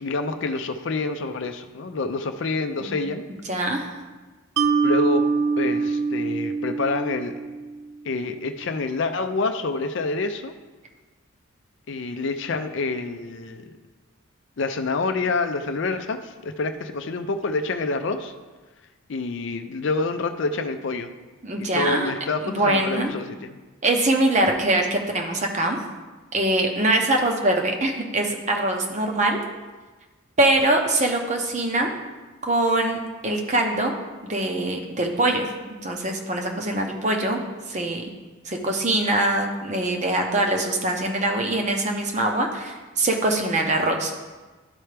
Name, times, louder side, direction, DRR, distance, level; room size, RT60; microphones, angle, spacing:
voice 1, 0.0-3.2 4.8-5.3 5.6-7.4 8.0-10.5 11.9-13.7 14.6-18.3 19.1-21.1 21.6-23.6, left 3 dB, 55° left, 8 dB, 0.4 m, -27 dB
voice 2, 3.3-4.0 21.4-22.1 22.4-23.1 23.8-25.8 26.3-29.4 30.4-31.9 32.4-33.9 34.2-35.5 35.8-37.4 37.7-38.1 38.4-44.1, right 2 dB, 35° right, 2 dB, 0.8 m, -23 dB
Mallet percussion, 4.6-7.8, right 4 dB, 80° right, 0.5 m, -24 dB
12.5 x 4.4 x 3.3 m, 1.3 s
head